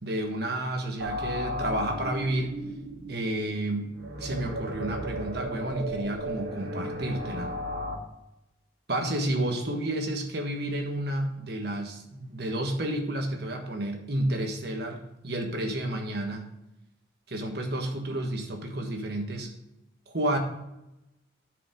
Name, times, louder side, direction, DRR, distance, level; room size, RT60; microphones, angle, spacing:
voice 1, 0.0-2.6 3.1-3.9 4.2-7.5 8.9-16.4 17.3-19.5 20.1-20.4, right 1 dB, 55° right, 3 dB, 1.4 m, -31 dB
sound 1, 1.0-7.9, equal, 75° right, 1.7 m, -35 dB
9.4 x 5.1 x 5.1 m, 0.90 s
head